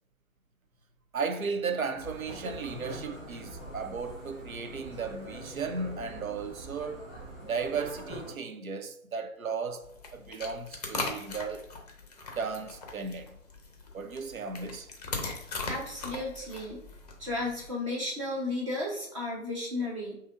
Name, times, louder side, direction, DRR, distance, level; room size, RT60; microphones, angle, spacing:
voice 1, 1.1-7.0 7.5-11.7 12.4-13.4 13.9-14.9, right 5 dB, 85° right, 0.6 m, -35 dB
sound 1, 1.9-8.3, right 1 dB, 5° right, 1.2 m, -43 dB
sound 2, 9.8-17.7, left 3 dB, 30° left, 0.5 m, -39 dB
voice 2, 15.7-16.8 17.2-20.1, left 2 dB, 25° right, 0.6 m, -33 dB
4.7 x 2.8 x 2.4 m
figure-of-eight pair, 130°, 40 cm